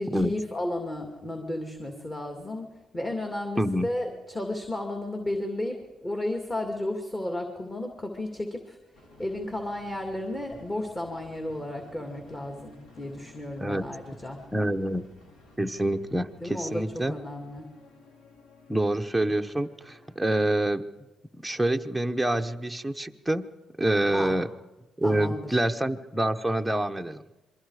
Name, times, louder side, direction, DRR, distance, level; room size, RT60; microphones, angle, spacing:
voice 1, 0.0-2.7 2.9-8.8 9.2-14.4 16.4-17.7 24.1-24.3 25.0-25.6, left 1 dB, 20° left, 3 dB, 2.5 m, -33 dB
voice 2, 3.6-3.9 13.6-13.9 14.5-15.0 15.6-17.1 18.7-20.9 21.4-23.5 23.8-24.5 25.0-27.2, right 1 dB, 5° right, 4 dB, 0.9 m, -26 dB
sound 1, 8.9-20.2, left 2 dB, 80° left, 5.6 m, -54 dB
27.0 x 22.5 x 4.9 m, 1.0 s
cardioid pair, 90°, 0 cm